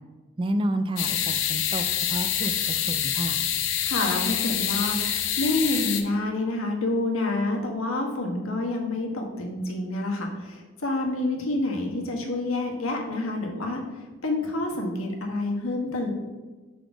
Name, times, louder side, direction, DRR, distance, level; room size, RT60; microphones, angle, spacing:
voice 1, 0.4-3.4, right 1 dB, 25° right, 8 dB, 0.3 m, -30 dB
sound 1, 1.0-6.0, left 10 dB, 65° left, 0.6 m, -26 dB
voice 2, 3.8-13.8 14.2-16.1, left 2 dB, 90° left, 1 dB, 1.3 m, -28 dB
5.0 x 4.0 x 5.9 m, 1.3 s
head